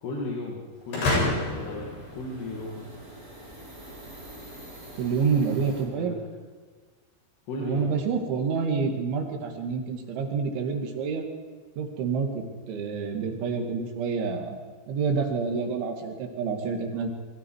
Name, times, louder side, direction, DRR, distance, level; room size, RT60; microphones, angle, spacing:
voice 1, 0.0-2.9 5.9-6.2 7.5-7.9, left 2 dB, 65° left, -2 dB, 4.4 m, -35 dB
sound 1, 0.7-5.8, right 1 dB, 20° right, 5.4 m, -46 dB
sound 2, 0.9-2.9, left 2 dB, 85° left, 9.8 m, -28 dB
voice 2, 5.0-6.2 7.6-11.2 11.8-14.6 14.9-17.1, right 5 dB, 90° right, 4 dB, 4.7 m, -28 dB
28.0 x 22.5 x 4.8 m, 1.4 s
omnidirectional pair, 5.2 m